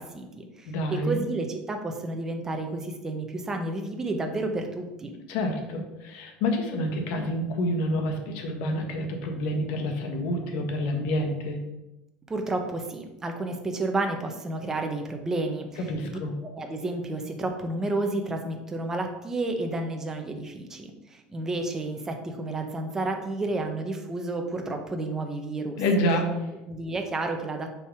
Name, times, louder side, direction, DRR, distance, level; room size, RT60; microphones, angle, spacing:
voice 1, 0.0-5.1 12.3-15.9 16.5-25.8 26.7-27.8, right 2 dB, 15° right, 4 dB, 1.0 m, -31 dB
voice 2, 0.6-1.2 5.3-11.6 15.8-16.3 25.8-26.5, left 1 dB, 70° left, 4 dB, 1.5 m, -28 dB
6.9 x 4.8 x 6.1 m, 0.97 s
cardioid pair, 160°, 3 cm